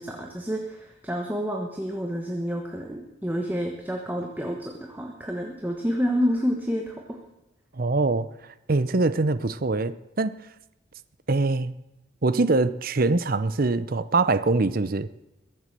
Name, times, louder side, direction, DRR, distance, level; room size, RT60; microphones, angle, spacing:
voice 1, 0.0-7.2, equal, 10° right, 1 dB, 1.3 m, -29 dB
voice 2, 7.8-8.3 8.7-10.3 11.3-11.7 12.2-15.1, right 3 dB, 45° right, 14 dB, 0.7 m, -23 dB
22.0 x 8.0 x 6.7 m, 0.96 s
head